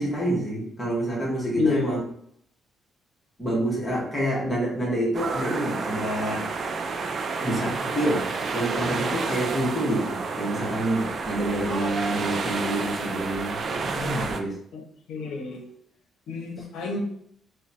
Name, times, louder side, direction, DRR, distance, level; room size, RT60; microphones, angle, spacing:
voice 1, 0.0-2.0 3.4-6.4 7.4-8.3 8.5-14.5, right 1 dB, 10° left, -5 dB, 1.2 m, -27 dB
voice 2, 1.6-2.0 14.7-14.8 15.1-15.6 16.3-17.0, left 4 dB, 70° left, 3 dB, 0.8 m, -28 dB
sound 1, 5.1-14.4, right 4 dB, 40° right, 0.3 m, -30 dB
3.0 x 2.2 x 4.0 m, 0.68 s
cardioid pair, 145°, 0 cm